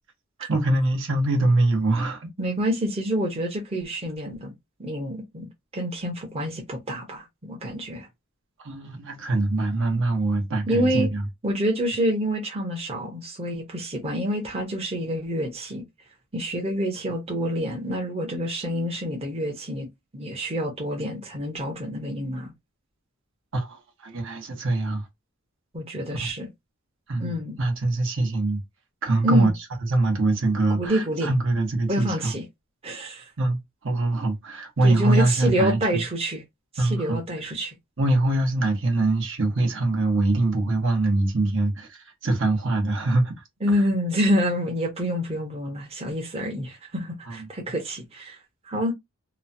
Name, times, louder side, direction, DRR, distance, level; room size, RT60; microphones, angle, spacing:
voice 1, 0.5-2.3 8.6-11.2 23.5-25.0 26.2-26.3 27.1-28.6 29.0-29.5 29.9-32.3 33.4-33.6 33.8-36.0 36.8-37.2 38.0-43.3 47.3-47.4, right 2 dB, 65° right, 1.0 m, -23 dB
voice 2, 2.4-4.5 4.8-8.1 10.7-11.1 11.4-15.8 16.3-19.9 20.1-22.5 25.7-26.5 27.2-27.6 29.2-29.5 30.7-31.3 31.9-32.4 32.8-33.2 34.8-36.4 36.7-37.7 43.6-48.4 48.7-48.9, equal, 30° right, 0.8 m, -27 dB
3.0 x 2.1 x 2.6 m
head